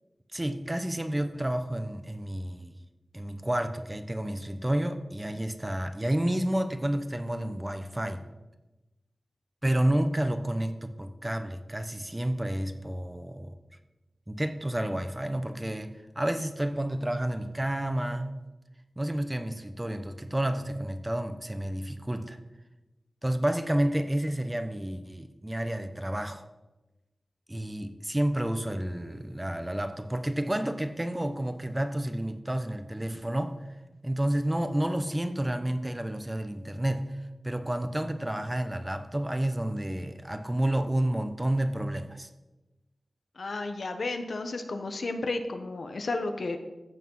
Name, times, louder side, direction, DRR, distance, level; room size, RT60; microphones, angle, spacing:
voice 1, 0.3-2.7 3.1-8.2 9.6-13.6 14.3-18.3 19.0-22.4 23.2-26.4 27.5-33.6 34.0-37.1 37.4-42.3, right 1 dB, 15° right, 9 dB, 1.0 m, -30 dB
voice 2, 43.4-46.6, left 3 dB, 75° left, 6 dB, 1.2 m, -32 dB
14.0 x 7.3 x 5.6 m, 1.1 s
wide cardioid pair, 70°, 0 cm